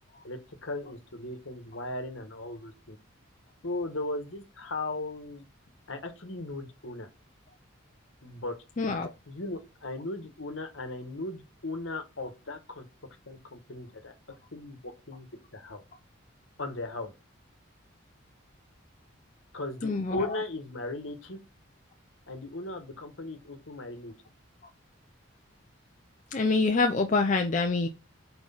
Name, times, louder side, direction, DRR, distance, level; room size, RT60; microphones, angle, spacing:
voice 1, 0.2-3.0 3.6-5.4 5.9-7.1 8.2-8.6 9.0-12.9 13.3-14.1 14.5-15.3 15.5-15.8 16.6-17.1 19.5-21.4 22.3-24.1, left 2 dB, 65° left, 1.2 m, -37 dB
voice 2, 8.8-9.1 19.8-20.4 26.3-27.9, left 3 dB, 35° left, 0.5 m, -26 dB
4.4 x 4.4 x 5.5 m
head